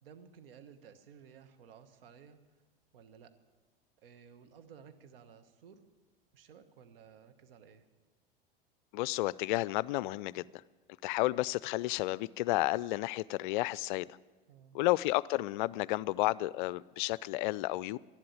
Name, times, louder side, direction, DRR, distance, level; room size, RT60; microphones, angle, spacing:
voice 1, 0.0-2.4 2.9-3.3 4.0-5.9 6.3-7.9 14.5-14.8, right 7 dB, 70° right, 9 dB, 1.3 m, -56 dB
voice 2, 8.9-10.4 11.0-14.1 14.7-18.0, left 18 dB, 55° left, 22 dB, 0.4 m, -31 dB
12.0 x 11.5 x 8.5 m, 1.3 s
hypercardioid pair, 85°, 29 cm